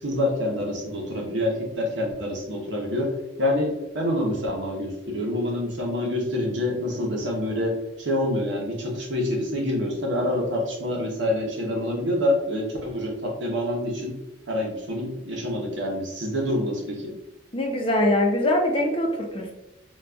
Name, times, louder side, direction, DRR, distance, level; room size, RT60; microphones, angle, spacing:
voice 1, 0.0-3.1 3.4-14.2 14.5-17.2, left 1 dB, 75° right, -1 dB, 0.9 m, -27 dB
voice 2, 17.5-19.5, left 1 dB, 30° left, 0 dB, 0.6 m, -23 dB
3.9 x 2.3 x 2.3 m, 0.94 s
head